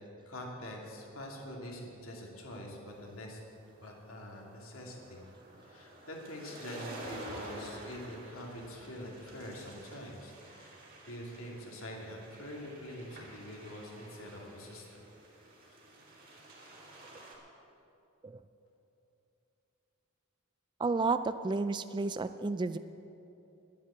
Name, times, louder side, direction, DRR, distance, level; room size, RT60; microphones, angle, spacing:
voice 1, 0.3-3.4 3.8-5.2 5.6-15.0 15.7-15.8, left 1 dB, 75° left, -1 dB, 2.6 m, -45 dB
sound 1, 3.1-17.3, right 1 dB, 45° right, 2.9 m, -50 dB
voice 2, 20.8-22.8, right 3 dB, 20° right, 12 dB, 0.3 m, -31 dB
11.0 x 10.5 x 8.6 m, 2.8 s
head